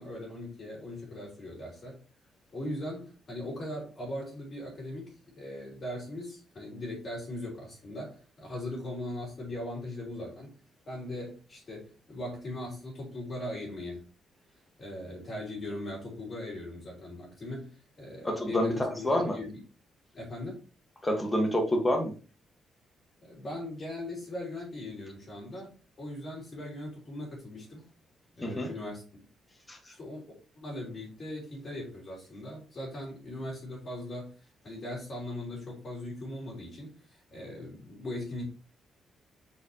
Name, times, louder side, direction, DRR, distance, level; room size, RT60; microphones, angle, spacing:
voice 1, 0.0-2.0 2.5-10.5 10.9-14.1 14.8-19.6 20.1-20.6 23.2-25.7 26.0-27.8 28.4-29.0 29.9-30.2 30.5-34.3 34.6-38.4, left 1 dB, 30° left, -5 dB, 3.1 m, -39 dB
voice 2, 18.2-19.4 21.0-22.1 28.4-28.7 29.7-29.8, equal, 10° left, 3 dB, 1.3 m, -28 dB
7.8 x 4.5 x 2.8 m, 0.35 s
cardioid pair, 175°, 0 cm